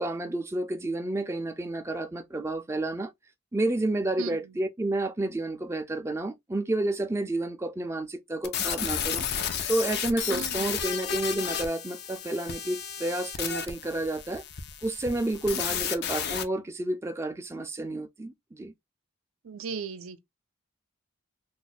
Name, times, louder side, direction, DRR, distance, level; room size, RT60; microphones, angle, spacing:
voice 1, 0.0-3.1 3.5-9.3 9.7-14.4 14.8-18.7, right 2 dB, 15° right, 0.4 m, -30 dB
sound 1, 8.4-16.4, left 8 dB, 50° left, 0.5 m, -32 dB
voice 2, 10.3-10.7 15.7-15.8 19.4-20.2, right 6 dB, 80° right, 0.5 m, -37 dB
2.5 x 2.2 x 3.9 m
head